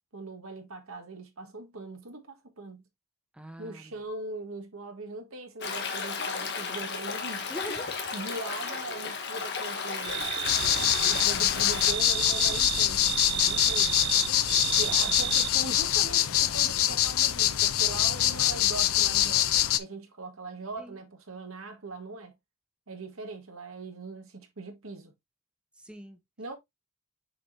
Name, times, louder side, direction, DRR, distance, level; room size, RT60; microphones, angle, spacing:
voice 1, 0.0-2.8 3.6-7.5 8.1-10.3 11.1-14.0 14.7-22.3 22.9-25.1 26.4-26.5, right 3 dB, 80° right, 1.7 m, -41 dB
voice 2, 3.3-4.0 7.5-8.1 14.8-15.4 20.8-21.0 25.8-26.2, equal, 5° right, 0.9 m, -44 dB
Stream, 5.6-11.9, left 5 dB, 55° left, 1.4 m, -34 dB
sound 1, 10.0-15.8, right 13 dB, 55° right, 0.3 m, -32 dB
sound 2, 10.4-19.8, left 13 dB, 85° left, 0.6 m, -25 dB
6.8 x 5.1 x 2.8 m
head